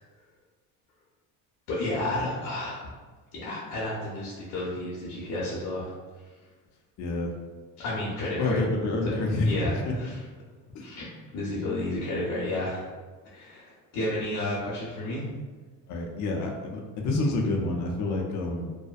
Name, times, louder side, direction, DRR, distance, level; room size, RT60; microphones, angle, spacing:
voice 1, 1.7-2.9 3.3-5.9 7.8-8.6 9.0-9.2 9.4-10.2 10.8-12.9 13.2-15.3, left 1 dB, 90° left, -6 dB, 0.7 m, -32 dB
voice 2, 7.0-7.3 8.4-9.9 10.7-10.8 15.9-18.7, left 2 dB, 55° left, 0 dB, 0.5 m, -28 dB
2.6 x 2.1 x 2.3 m, 1.4 s
cardioid pair, 125°, 34 cm